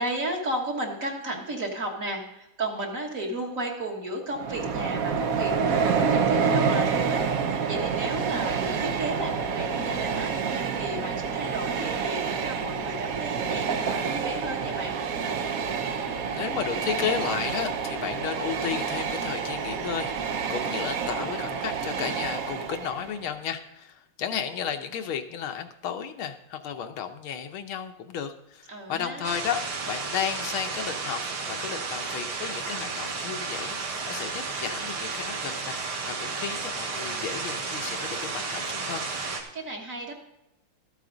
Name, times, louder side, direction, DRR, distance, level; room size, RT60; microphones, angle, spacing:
voice 1, 0.0-15.0 28.7-29.3 39.5-40.1, right 1 dB, 40° right, 0 dB, 1.8 m, -33 dB
Train, 4.3-23.2, right 6 dB, 65° right, 0.9 m, -28 dB
voice 2, 15.8-39.0, left 8 dB, 75° left, 6 dB, 1.7 m, -33 dB
sound 1, 29.2-39.4, right 4 dB, 85° right, 2.3 m, -32 dB
13.0 x 8.4 x 3.9 m, 0.89 s
omnidirectional pair, 2.4 m